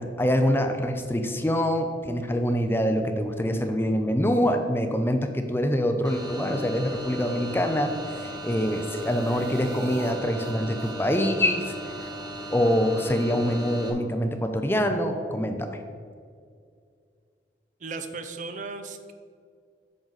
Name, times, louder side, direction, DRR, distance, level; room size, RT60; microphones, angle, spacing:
voice 1, 0.0-12.1 12.5-15.8, equal, 15° left, 6 dB, 0.5 m, -25 dB
sound 1, 6.0-13.9, right 1 dB, 25° right, 1.1 m, -37 dB
sound 2, 8.2-10.1 10.4-10.5 10.8-10.9 11.2-11.3 11.6-11.7 12.0-12.1 12.4-12.5 12.8-12.9 13.2-13.3, right 2 dB, 75° right, 1.1 m, -45 dB
voice 2, 17.8-19.1, right 4 dB, 45° right, 8 dB, 0.6 m, -36 dB
8.8 x 6.4 x 4.0 m, 2.2 s
head